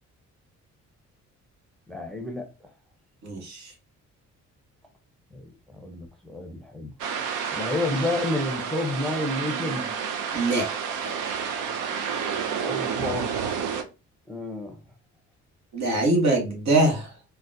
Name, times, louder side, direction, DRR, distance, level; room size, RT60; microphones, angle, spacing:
voice 1, 1.9-2.5 5.3-5.4 5.7-6.9 7.5-9.9 12.6-13.3 14.3-14.8, left 2 dB, ahead, 0.6 m, -30 dB
voice 2, 3.2-3.7 10.3-10.6 11.0-11.3 15.7-17.1, right 2 dB, 65° right, 1.3 m, -23 dB
sound 1, 7.0-13.8, right 7 dB, 85° right, 0.6 m, -30 dB
3.9 x 2.2 x 2.6 m
cardioid pair, 90°, 30 cm